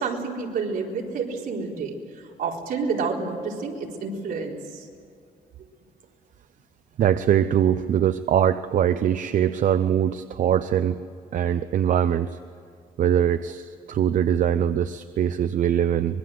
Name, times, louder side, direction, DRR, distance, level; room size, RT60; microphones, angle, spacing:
voice 1, 0.0-4.9, right 4 dB, 70° right, -1 dB, 4.2 m, -29 dB
voice 2, 7.0-11.0 11.3-12.4 13.0-16.2, right 9 dB, 55° right, 11 dB, 0.7 m, -22 dB
24.5 x 22.0 x 7.8 m, 2.4 s
cardioid pair, 160°, 15 cm